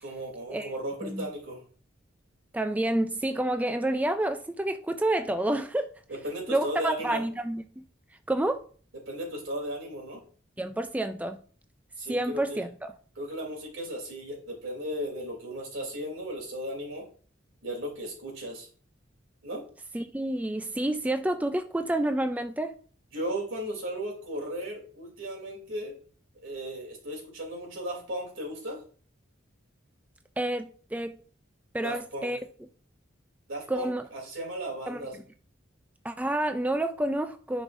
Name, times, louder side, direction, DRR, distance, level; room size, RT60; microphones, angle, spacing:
voice 1, 0.0-1.6 6.1-7.2 9.1-10.2 12.0-12.7 13.1-17.1 17.6-18.7 19.4-19.6 23.1-26.0 26.4-28.8 31.8-32.3 33.5-35.2, right 1 dB, 80° right, 2.8 m, -36 dB
voice 2, 2.5-6.0 6.5-7.9 8.3-8.6 10.6-11.4 12.1-12.9 19.9-22.8 30.4-31.2 31.7-32.4 33.7-34.0 34.9-35.1 36.0-37.6, right 1 dB, 10° right, 0.3 m, -29 dB
9.9 x 5.1 x 2.5 m
head